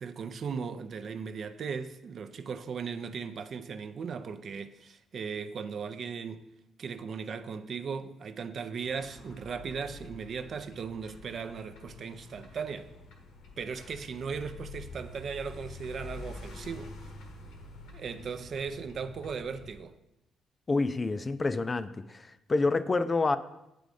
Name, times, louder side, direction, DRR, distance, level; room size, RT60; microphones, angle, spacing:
voice 1, 0.0-6.4 6.8-12.9 13.6-16.9 17.9-20.0, right 6 dB, 55° right, 0.4 m, -37 dB
sound 1, 8.8-19.8, left 3 dB, 85° left, 1.1 m, -47 dB
voice 2, 20.7-23.4, left 3 dB, 30° left, 0.4 m, -28 dB
8.2 x 3.9 x 4.9 m
cardioid pair, 90°, 0 cm